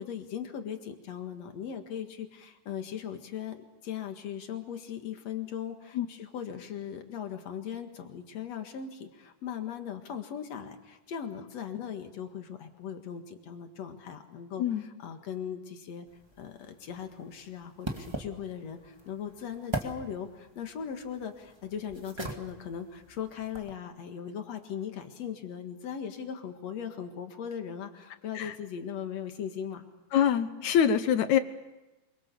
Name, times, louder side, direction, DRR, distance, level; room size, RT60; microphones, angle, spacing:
voice 1, 0.0-16.1 16.4-29.8, left 8 dB, 55° left, 6 dB, 2.6 m, -39 dB
sound 1, 16.1-23.8, right 1 dB, 15° right, 1.0 m, -42 dB
voice 2, 30.1-31.4, left 9 dB, 70° left, 11 dB, 2.0 m, -24 dB
26.5 x 24.0 x 6.9 m, 1.1 s
omnidirectional pair, 4.1 m